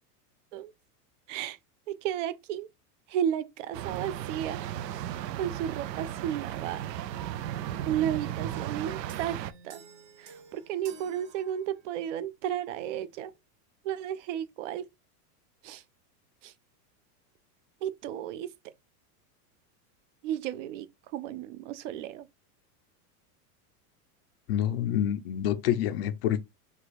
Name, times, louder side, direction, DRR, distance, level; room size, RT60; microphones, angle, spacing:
voice 1, 1.9-2.7 3.1-4.6 5.4-6.8 7.9-9.4 9.6-9.8 10.2-13.3 13.8-14.9 15.6-15.8 16.4-16.5 17.8-18.7 20.2-22.3, right 10 dB, 50° right, 0.5 m, -33 dB
sound 1, 3.7-9.5, right 11 dB, 90° right, 0.7 m, -35 dB
sound 2, 9.1-12.1, right 5 dB, 75° right, 2.6 m, -51 dB
voice 2, 24.5-26.4, left 11 dB, 40° left, 0.4 m, -27 dB
4.8 x 2.4 x 4.1 m
supercardioid pair, 170°, 48 cm